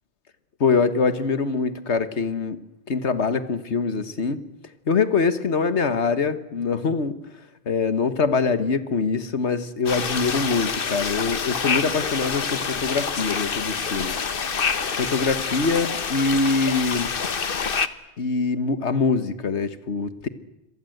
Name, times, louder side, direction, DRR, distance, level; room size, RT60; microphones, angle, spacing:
voice 1, 0.6-2.6 2.9-4.4 4.9-7.2 7.7-14.1 15.0-17.1 18.2-20.3, left 4 dB, 90° left, 13 dB, 1.8 m, -24 dB
sound 1, 9.9-17.9, left 6 dB, 55° left, 1.3 m, -27 dB
28.0 x 22.5 x 8.0 m, 0.91 s
omnidirectional pair, 1.1 m